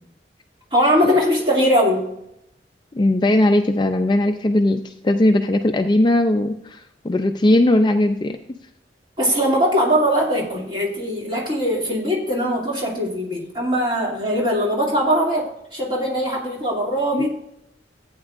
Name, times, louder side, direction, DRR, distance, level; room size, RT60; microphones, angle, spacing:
voice 1, 0.7-2.1 9.2-17.4, equal, 25° right, -3 dB, 2.5 m, -21 dB
voice 2, 2.9-8.6 17.1-17.3, left 1 dB, 25° left, 6 dB, 0.4 m, -19 dB
15.0 x 8.8 x 2.5 m, 0.81 s
head